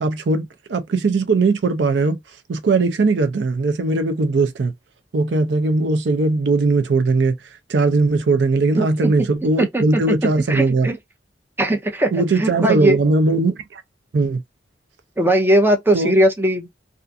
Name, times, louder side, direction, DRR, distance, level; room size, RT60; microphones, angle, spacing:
voice 1, 0.0-2.2 2.5-4.7 5.1-7.4 7.7-10.9 12.1-13.8 14.1-14.4 15.9-16.1, right 3 dB, 75° right, 0.4 m, -19 dB
voice 2, 8.8-9.3 9.6-9.8 10.5-11.0 11.6-13.0 15.2-16.7, right 1 dB, 10° right, 0.5 m, -19 dB
2.5 x 2.3 x 2.5 m
head